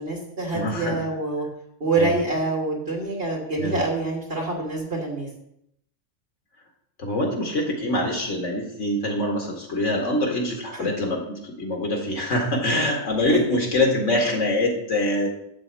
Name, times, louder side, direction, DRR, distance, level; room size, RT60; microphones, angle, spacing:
voice 1, 0.0-1.4 1.8-5.3 10.7-10.9 13.3-13.4, right 3 dB, 50° right, -2 dB, 3.4 m, -26 dB
voice 2, 0.5-1.0 2.0-2.1 3.6-3.8 7.0-15.3, left 1 dB, 75° left, 0 dB, 2.3 m, -24 dB
12.5 x 4.3 x 7.5 m, 0.78 s
omnidirectional pair, 1.3 m